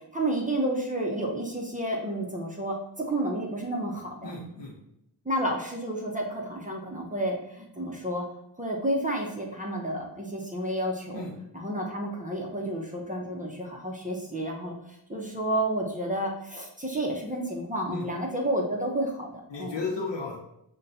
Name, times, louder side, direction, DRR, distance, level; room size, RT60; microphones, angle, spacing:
voice 1, 0.1-2.8 3.1-4.3 5.2-8.2 8.6-11.2 11.5-19.8, right 1 dB, 20° right, -2 dB, 0.6 m, -31 dB
voice 2, 4.2-4.7 11.1-11.3 17.9-18.1 19.5-20.4, left 3 dB, 70° left, -2 dB, 0.8 m, -33 dB
5.4 x 2.2 x 2.6 m, 0.80 s
wide cardioid pair, 80°, 45 cm